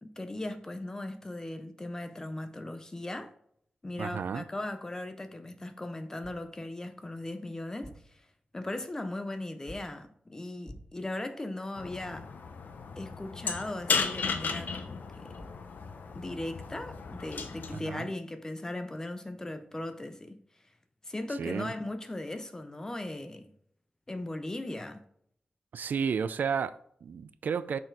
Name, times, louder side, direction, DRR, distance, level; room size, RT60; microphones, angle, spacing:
voice 1, 0.0-3.3 3.8-8.2 8.5-12.3 13.0-15.3 16.1-20.4 21.0-23.5 24.1-25.0, left 1 dB, 20° left, 0.5 m, -38 dB
voice 2, 4.0-4.4 17.7-18.1 21.4-21.7 25.7-27.8, right 6 dB, 80° right, 0.4 m, -32 dB
sound 1, 6.2-6.5 7.6-8.2 9.7-10.0 10.6-11.1 15.1-15.2 15.4-15.7, left 1 dB, 15° right, 2.2 m, -49 dB
sound 2, 11.8-17.8, left 5 dB, 80° left, 0.7 m, -35 dB
6.5 x 4.2 x 4.6 m
wide cardioid pair, 160°, 3 cm